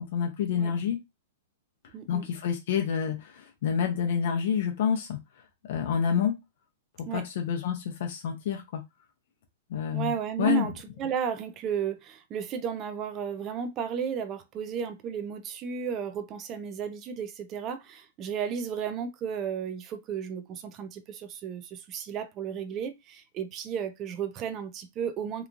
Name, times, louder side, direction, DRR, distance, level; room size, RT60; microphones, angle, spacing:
voice 1, 0.1-1.0 2.1-5.2 5.6-6.3 7.0-8.8 9.7-10.1 10.4-10.7, left 7 dB, 55° left, 0.6 m, -28 dB
voice 2, 1.9-2.3 7.1-7.2 9.9-10.7 11.0-25.5, right 7 dB, 25° right, 0.4 m, -33 dB
2.9 x 2.3 x 2.5 m
hypercardioid pair, 160°, 0 cm